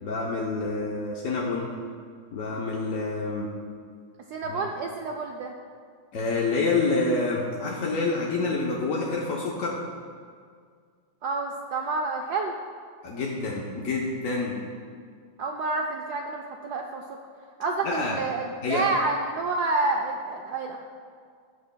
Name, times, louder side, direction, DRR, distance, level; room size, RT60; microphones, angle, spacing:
voice 1, 0.0-1.7 2.3-3.5 4.5-4.7 6.1-9.8 13.0-14.6 17.8-18.2 18.6-18.9, left 3 dB, 60° left, -3 dB, 0.9 m, -27 dB
voice 2, 4.3-5.5 11.2-12.5 15.4-17.2 17.6-20.8, right 3 dB, 80° right, 2 dB, 0.9 m, -29 dB
17.5 x 6.4 x 2.2 m, 2.1 s
omnidirectional pair, 2.3 m